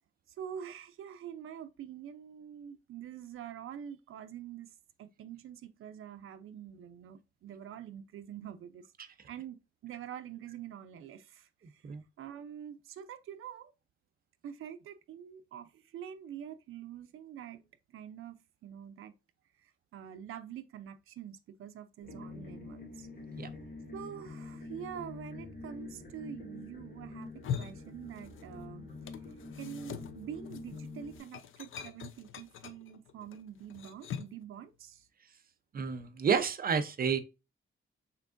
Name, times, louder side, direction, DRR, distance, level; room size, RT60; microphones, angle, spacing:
voice 1, 0.3-4.7 5.0-11.9 12.2-13.7 14.4-17.6 17.9-19.1 19.6-23.1 23.9-28.9 29.6-35.1, right 9 dB, 85° right, 0.5 m, -46 dB
sound 1, 22.0-31.2, left 3 dB, 45° left, 2.4 m, -46 dB
sound 2, 27.2-28.6 28.9-34.4, left 8 dB, 75° left, 0.5 m, -43 dB
voice 2, 35.7-37.2, right 6 dB, 45° right, 0.6 m, -30 dB
5.7 x 3.7 x 2.5 m
wide cardioid pair, 135°, 21 cm